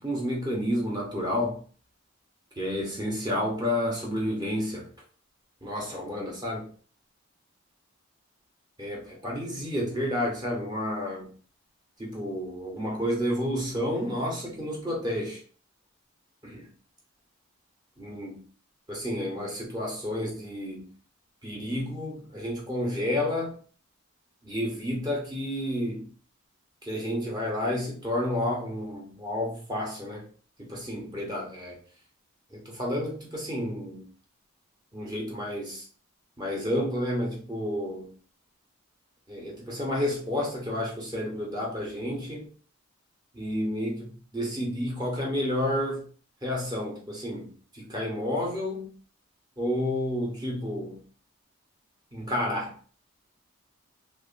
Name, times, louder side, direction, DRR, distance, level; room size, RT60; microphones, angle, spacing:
voice 1, 0.0-1.6 2.6-4.9 5.6-6.7 8.8-11.3 12.0-15.4 16.4-16.7 18.0-18.4 18.9-20.9 21.4-23.6 24.4-26.1 26.8-30.3 30.6-31.8 32.5-34.1 34.9-35.9 36.4-38.1 39.3-42.5 43.3-46.0 46.4-48.9 49.6-51.0 52.1-52.8, left 1 dB, 20° right, -2 dB, 0.7 m, -30 dB
3.0 x 2.3 x 2.4 m, 0.42 s
head